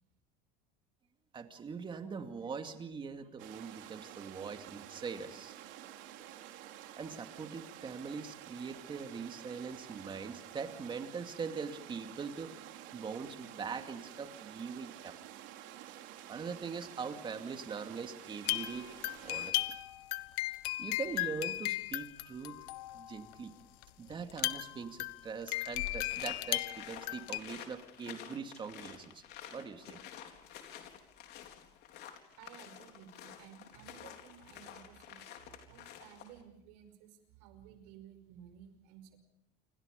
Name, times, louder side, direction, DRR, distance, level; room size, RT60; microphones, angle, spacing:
voice 1, 1.3-5.5 7.0-15.2 16.3-19.7 20.8-22.6 22.9-23.5 24.0-29.2 29.5-30.0, right 5 dB, 25° right, 6 dB, 2.3 m, -42 dB
sound 1, 3.4-19.5, right 12 dB, 70° right, 3.2 m, -50 dB
sound 2, 18.4-23.3 23.8-23.9 24.1-27.4, left 17 dB, 90° left, 1.3 m, -36 dB
sound 3, 26.1-36.4, left 10 dB, 55° left, 4.1 m, -50 dB
voice 2, 32.4-39.2, right 9 dB, 85° right, 9 dB, 5.4 m, -56 dB
28.0 x 25.5 x 5.3 m, 0.73 s
cardioid pair, 140°, 20 cm